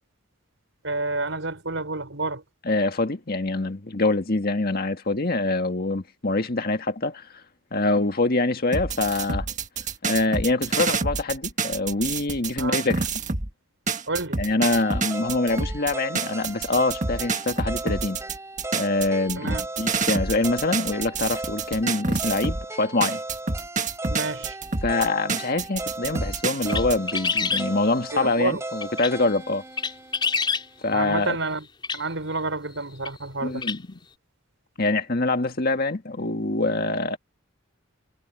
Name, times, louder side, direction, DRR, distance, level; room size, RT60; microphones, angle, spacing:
voice 1, 0.8-2.4 12.6-12.8 14.1-14.4 19.4-19.6 24.1-24.6 28.1-28.6 30.9-31.7 31.9-33.7, right 2 dB, 65° right, 5.2 m, -29 dB
voice 2, 2.6-7.4 7.7-9.5 10.0-13.1 14.4-18.2 18.7-23.2 24.8-29.6 30.8-31.4 33.4-34.0 34.8-37.2, left 2 dB, 45° left, 1.8 m, -25 dB
sound 1, 8.7-13.5 13.9-22.6 23.0-27.0, right 4 dB, 35° right, 1.6 m, -28 dB
sound 2, 14.7-30.8, right 2 dB, 15° right, 4.4 m, -37 dB
sound 3, 26.7-27.7 28.8-29.1 29.8-30.6 31.8-32.0 33.0-33.1 33.6-33.8, left 5 dB, 20° left, 4.8 m, -26 dB
head